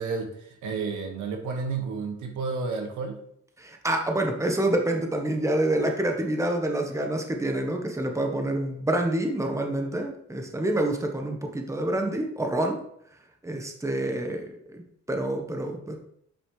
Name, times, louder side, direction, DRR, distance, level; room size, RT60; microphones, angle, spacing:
voice 1, 0.0-3.2, right 4 dB, 85° right, 2 dB, 1.7 m, -31 dB
voice 2, 3.6-12.8 13.4-14.8 15.1-16.0, right 1 dB, 10° right, 3 dB, 1.2 m, -27 dB
8.4 x 5.6 x 3.3 m, 0.69 s
cardioid pair, 90°, 30 cm